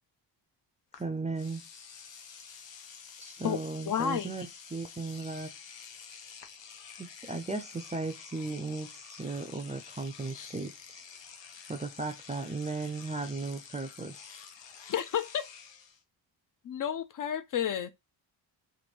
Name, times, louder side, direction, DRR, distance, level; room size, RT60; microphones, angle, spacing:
Engine / Domestic sounds home sounds, 0.9-1.0 1.3-16.0, left 7 dB, 80° left, 0.8 m, -49 dB
voice 1, 1.0-1.6 3.2-5.5 7.0-11.0 11.7-14.3, right 3 dB, 20° right, 0.3 m, -36 dB
voice 2, 3.9-4.3 10.3-10.5 14.9-15.4 16.6-17.9, left 9 dB, 50° left, 0.5 m, -31 dB
3.0 x 2.6 x 4.3 m
cardioid pair, 125°, 43 cm